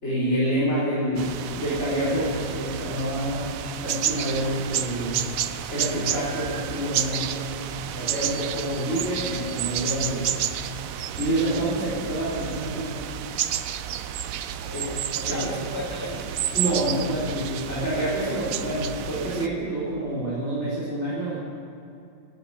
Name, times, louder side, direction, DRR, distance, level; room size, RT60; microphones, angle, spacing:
voice 1, 0.0-3.5 3.8-5.2 5.7-7.5 7.8-10.4 11.2-13.0 14.7-14.9 15.3-15.5 16.5-21.4, right 1 dB, 35° left, -10 dB, 4.6 m, -27 dB
sound 1, 1.2-19.5, right 10 dB, 70° right, 0.8 m, -31 dB
voice 2, 14.5-16.5, left 1 dB, 10° right, -2 dB, 1.8 m, -37 dB
12.5 x 9.7 x 9.6 m, 2.7 s
omnidirectional pair, 2.1 m